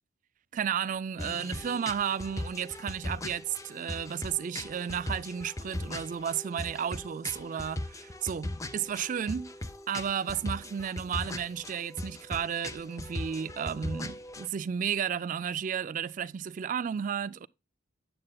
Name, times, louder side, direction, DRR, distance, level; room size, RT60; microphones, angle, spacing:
voice 1, 0.5-9.5 9.9-17.5, right 8 dB, 40° right, 0.3 m, -33 dB
sound 1, 1.2-14.5, left 1 dB, 15° left, 0.5 m, -39 dB
9.5 x 7.7 x 2.3 m
head